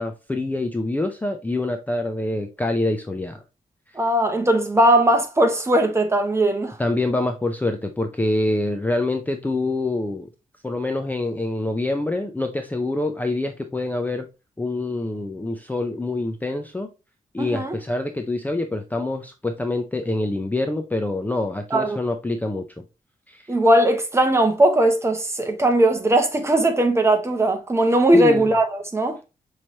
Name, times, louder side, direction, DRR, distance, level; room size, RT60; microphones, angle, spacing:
voice 1, 0.0-3.4 6.8-10.3 10.6-14.3 14.6-16.9 17.3-22.8 23.3-23.4 28.1-28.5, left 2 dB, 10° left, 0.5 m, -25 dB
voice 2, 3.9-6.8 17.4-17.8 21.7-22.0 23.5-29.2, right 1 dB, 20° right, 0.9 m, -19 dB
5.7 x 3.2 x 2.7 m
wide cardioid pair, 135°, 14 cm